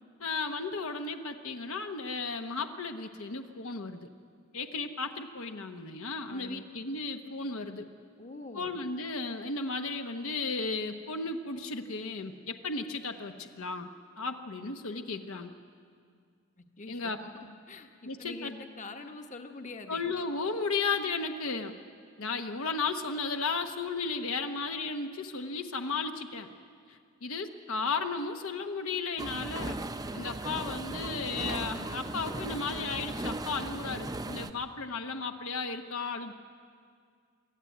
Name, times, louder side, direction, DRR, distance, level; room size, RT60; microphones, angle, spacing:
voice 1, 0.2-4.1 4.5-7.9 8.6-13.9 14.2-15.5 16.9-17.5 18.0-18.5 19.9-21.7 22.2-26.5 26.9-29.8 30.1-36.3, left 4 dB, 70° left, 6 dB, 1.0 m, -34 dB
voice 2, 6.3-6.6 8.2-8.8 16.6-20.2, left 3 dB, 35° left, 5 dB, 1.2 m, -45 dB
sound 1, 29.2-34.5, right 2 dB, 20° right, 0.6 m, -37 dB
23.0 x 14.0 x 9.3 m, 2.2 s
head